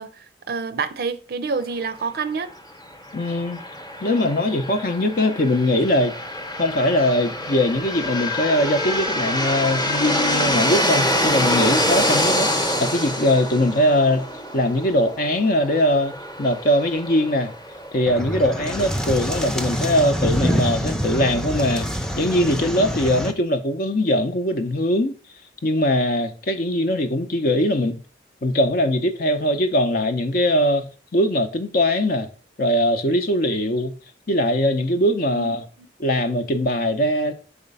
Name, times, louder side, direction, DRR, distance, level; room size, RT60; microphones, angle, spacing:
voice 1, 0.0-2.5 35.3-35.5, right 4 dB, 55° right, 0.5 m, -28 dB
voice 2, 3.1-3.6 4.0-6.1 6.6-12.5 12.8-14.3 14.5-17.5 17.9-25.2 25.6-28.0 28.4-32.3 32.6-33.9 34.3-35.6 36.0-37.3, left 1 dB, 55° left, 0.7 m, -21 dB
sound 1, 3.1-20.7, left 1 dB, 20° left, 0.9 m, -26 dB
sound 2, 18.1-23.3, equal, 5° left, 0.5 m, -25 dB
4.9 x 4.3 x 5.4 m
head